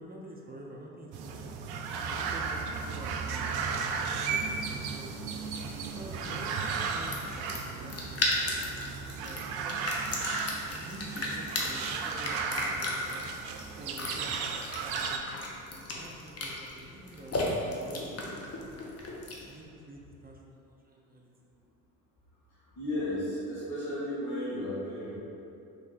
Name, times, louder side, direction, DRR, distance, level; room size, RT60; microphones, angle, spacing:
voice 1, 0.0-1.5 2.0-5.1 5.6-8.2 8.5-8.6 9.2-9.8 10.7-13.0 13.8-14.3 14.8-15.4 15.9-18.9 19.5-21.3, right 1 dB, 20° right, -2 dB, 0.7 m, -47 dB
sound 1, 1.1-15.2, right 5 dB, 60° right, 0.5 m, -35 dB
sound 2, 4.7-19.6, left 1 dB, 35° left, 0.9 m, -36 dB
voice 2, 22.7-25.2, left 1 dB, 75° left, -12 dB, 1.5 m, -34 dB
3.5 x 3.2 x 4.1 m, 2.7 s
hypercardioid pair, 45°, 44 cm